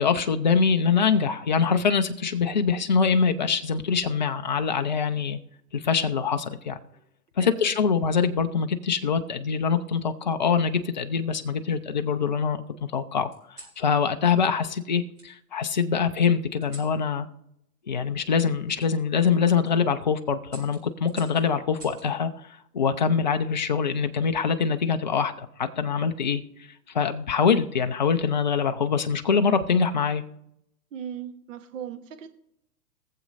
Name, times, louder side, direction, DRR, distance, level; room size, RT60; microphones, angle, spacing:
voice 1, 0.0-5.4 5.7-6.8 7.4-13.3 13.8-17.3 17.9-22.3 22.7-26.4 26.9-30.2, left 6 dB, 30° left, 8 dB, 0.4 m, -24 dB
sound 1, 5.9-7.1 8.1-8.5 9.8-10.5 11.2-12.1 13.3-13.8 15.1-15.3 16.6-17.0 18.8-18.9 19.4-19.7 20.5-22.1 23.6-24.0, right 1 dB, 30° right, 3.5 m, -51 dB
voice 2, 7.4-8.0 30.9-32.3, right 8 dB, 50° right, 8 dB, 1.2 m, -38 dB
22.0 x 7.4 x 2.5 m, 0.79 s
hypercardioid pair, 135°, 50 cm